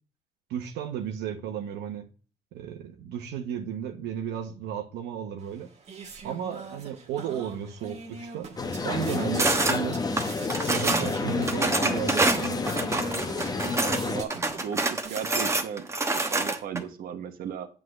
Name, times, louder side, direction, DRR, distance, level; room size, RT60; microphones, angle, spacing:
voice 1, 0.5-2.0 2.5-5.7 6.2-8.5 8.8-10.1 10.7-12.6, right 9 dB, 85° right, 1.0 m, -34 dB
sound 1, 5.4-15.9, right 5 dB, 40° right, 1.5 m, -43 dB
sound 2, 8.6-14.2, left 3 dB, 20° left, 0.9 m, -30 dB
sound 3, 9.4-9.8 10.2-11.1 11.5-14.0 14.3-16.8, right 2 dB, 15° right, 1.0 m, -26 dB
voice 2, 14.0-15.8 16.1-17.7, right 7 dB, 60° right, 1.1 m, -36 dB
7.8 x 3.8 x 6.4 m
cardioid pair, 110°, 17 cm